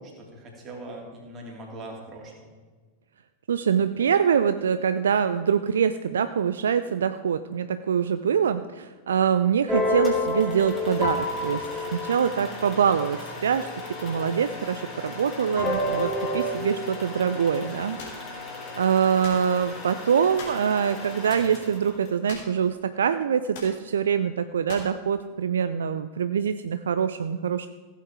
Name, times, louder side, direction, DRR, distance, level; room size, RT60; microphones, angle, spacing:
voice 1, 0.0-2.6, right 1 dB, 25° right, -1 dB, 3.2 m, -41 dB
voice 2, 3.5-13.7 14.0-18.4 18.7-27.7, right 7 dB, 65° right, 11 dB, 0.4 m, -24 dB
sound 1, 9.7-14.3 15.6-16.5, left 2 dB, 5° left, 2.3 m, -29 dB
sound 2, 10.0-22.3, left 3 dB, 30° left, 3.4 m, -39 dB
sound 3, 18.0-18.2 19.2-19.5 20.4-20.7 22.3-22.7 22.9-23.0 23.5-23.8 24.7-25.0, left 3 dB, 50° left, 3.2 m, -40 dB
15.5 x 8.2 x 4.7 m, 1.4 s
figure-of-eight pair, 90°, 0 cm